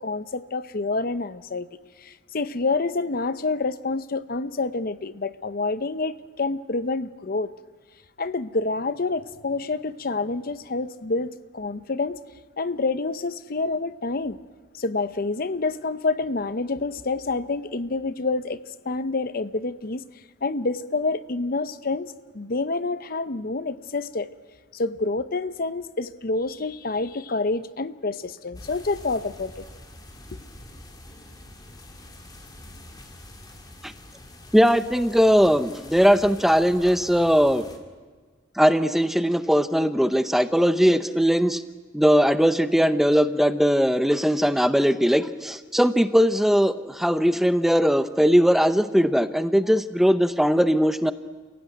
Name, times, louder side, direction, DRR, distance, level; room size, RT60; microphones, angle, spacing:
voice 1, 0.0-1.7 2.0-7.5 8.2-12.2 12.6-14.4 14.8-18.6 18.8-20.0 20.4-24.3 24.7-29.6, left 3 dB, 50° left, 0.7 m, -28 dB
sound 1, 28.5-37.8, left 1 dB, 20° left, 2.4 m, -45 dB
voice 2, 34.5-37.6 38.6-41.6 41.9-51.1, equal, ahead, 0.7 m, -20 dB
29.5 x 16.5 x 9.2 m
head